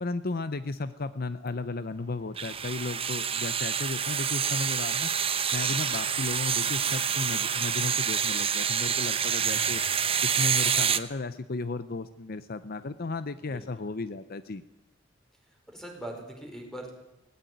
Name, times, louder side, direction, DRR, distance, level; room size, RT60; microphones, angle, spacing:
voice 1, 0.0-5.1 5.5-9.8 10.2-14.6, left 3 dB, 50° left, 13 dB, 0.7 m, -34 dB
sound 1, 2.4-11.0, right 7 dB, 30° right, 0.9 m, -27 dB
voice 2, 9.3-10.8 13.4-13.9 15.5-16.9, right 1 dB, ahead, 2 dB, 5.0 m, -44 dB
18.5 x 17.0 x 9.4 m, 0.93 s
head